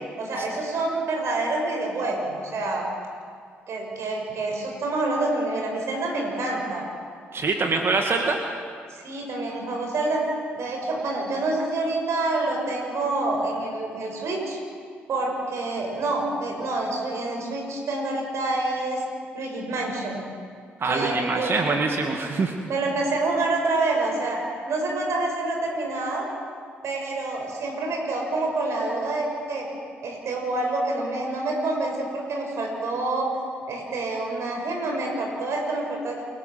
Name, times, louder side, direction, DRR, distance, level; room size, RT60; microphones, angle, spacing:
voice 1, 0.2-2.8 3.7-6.8 8.9-10.2 10.5-14.6 15.1-19.0 19.3-20.2 20.8-21.6 22.7-24.4 24.7-26.3 26.8-29.7 30.0-33.3 33.7-36.2, right 2 dB, 65° right, 0 dB, 6.2 m, -27 dB
voice 2, 7.3-8.4 20.8-22.5, right 3 dB, 50° right, 3 dB, 2.2 m, -24 dB
28.5 x 13.5 x 7.7 m, 2.1 s
supercardioid pair, 55°, 5 cm